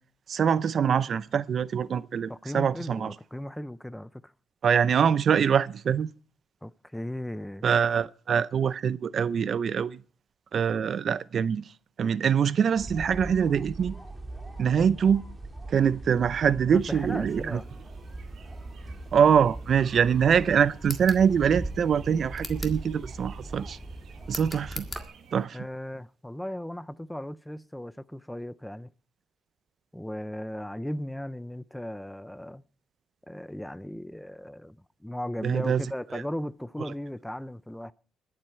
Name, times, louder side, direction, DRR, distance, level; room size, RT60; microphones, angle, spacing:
voice 1, 0.3-3.1 4.6-6.1 7.6-10.0 10.5-11.7 12.0-13.9 14.6-15.2 15.7-17.6 19.1-23.8 24.3-24.9 25.3-25.6 35.4-35.8 36.1-36.2, right 7 dB, 55° right, 0.5 m, -24 dB
voice 2, 2.3-4.3 6.6-7.7 16.7-17.7 25.5-28.9 29.9-32.6 33.3-34.8 35.0-37.9, left 1 dB, 5° left, 0.5 m, -37 dB
sound 1, 12.8-25.0, right 2 dB, 15° right, 2.3 m, -40 dB
sound 2, 16.7-25.5, right 6 dB, 75° right, 1.7 m, -54 dB
sound 3, 20.8-21.3 22.3-22.8 24.3-25.1, left 2 dB, 20° left, 1.8 m, -39 dB
21.0 x 7.7 x 4.4 m
cardioid pair, 90°, 0 cm